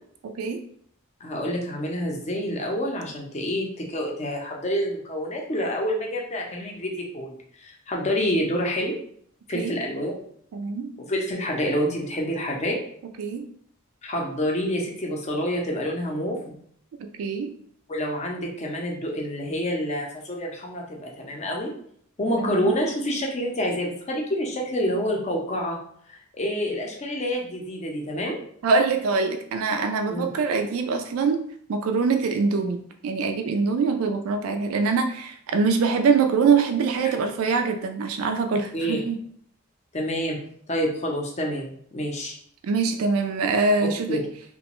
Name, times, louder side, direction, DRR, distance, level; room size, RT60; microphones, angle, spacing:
voice 1, 0.2-0.6 9.5-9.7 10.5-10.9 13.2-13.5 17.2-17.5 22.4-22.7 28.6-31.4 31.7-32.8 33.0-39.2 42.6-44.2, right 4 dB, 80° right, 5 dB, 0.3 m, -23 dB
voice 2, 1.2-7.3 7.6-9.0 9.5-10.1 11.0-12.8 14.0-16.5 17.9-21.7 22.2-25.8 26.1-28.4 30.1-30.3 38.7-39.0 39.9-40.4 40.7-42.3 43.8-44.2, equal, 30° left, 0 dB, 0.5 m, -28 dB
2.9 x 2.1 x 2.9 m, 0.63 s
head